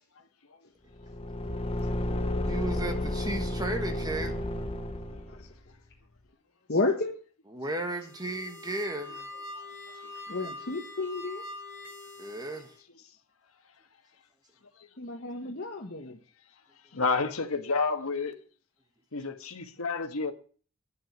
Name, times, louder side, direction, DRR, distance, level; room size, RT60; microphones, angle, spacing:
Car / Engine, 1.0-5.5, left 1 dB, 30° left, 0.9 m, -32 dB
voice 1, 2.5-4.4 7.5-9.3 12.2-12.7, right 2 dB, 20° right, 1.4 m, -34 dB
voice 2, 6.7-7.1 10.3-11.4 15.0-16.2, left 3 dB, 50° left, 1.4 m, -31 dB
sound 1, 7.9-12.8, left 2 dB, 65° right, 6.7 m, -44 dB
voice 3, 16.9-18.3 19.1-20.3, left 4 dB, 85° left, 1.4 m, -29 dB
10.0 x 7.6 x 7.9 m
head